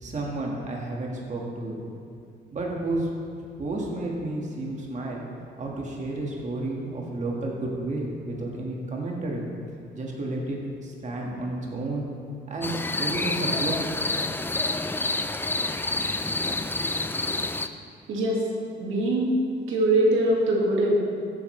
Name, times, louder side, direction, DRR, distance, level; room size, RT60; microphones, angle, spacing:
voice 1, 0.0-1.8 2.5-3.1 3.6-5.3 5.6-9.4 9.9-12.0 12.5-13.8 14.2-14.4, right 2 dB, 35° right, -2 dB, 1.8 m, -31 dB
sound 1, 12.6-17.7, left 2 dB, 10° left, 0.4 m, -28 dB
voice 2, 18.1-18.4 18.8-19.4 19.7-20.9, right 1 dB, 80° right, -3 dB, 2.0 m, -22 dB
14.5 x 8.2 x 3.3 m, 2.3 s
cardioid pair, 90°, 20 cm